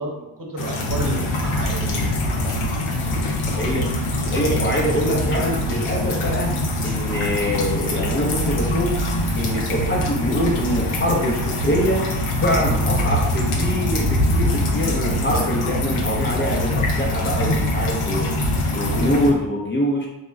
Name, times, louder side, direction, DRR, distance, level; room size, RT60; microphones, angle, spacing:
voice 1, 0.0-2.1, right 1 dB, 45° right, -2 dB, 0.8 m, -30 dB
sound 1, 0.6-19.3, left 1 dB, 85° left, 0.6 m, -23 dB
sound 2, 1.0-1.1 1.5-2.5 2.9-4.0 4.3-6.7, left 1 dB, 50° left, 0.8 m, -32 dB
voice 2, 3.6-3.9 4.2-6.5 6.8-9.0 9.4-12.0 12.4-18.3 18.7-20.1, equal, 25° left, -3 dB, 0.5 m, -24 dB
2.1 x 2.1 x 3.5 m, 0.95 s
cardioid pair, 55°, 48 cm